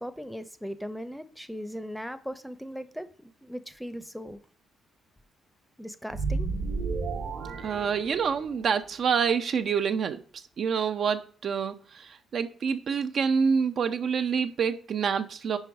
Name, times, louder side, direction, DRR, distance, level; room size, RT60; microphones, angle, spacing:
voice 1, 0.0-4.4 5.8-6.5, equal, ahead, 0.7 m, -38 dB
sound 1, 6.1-8.7, right 4 dB, 75° right, 1.2 m, -32 dB
voice 2, 7.6-10.2 10.6-15.6, right 6 dB, 60° right, 0.5 m, -27 dB
5.4 x 4.5 x 4.8 m
hypercardioid pair, 55°, 0 cm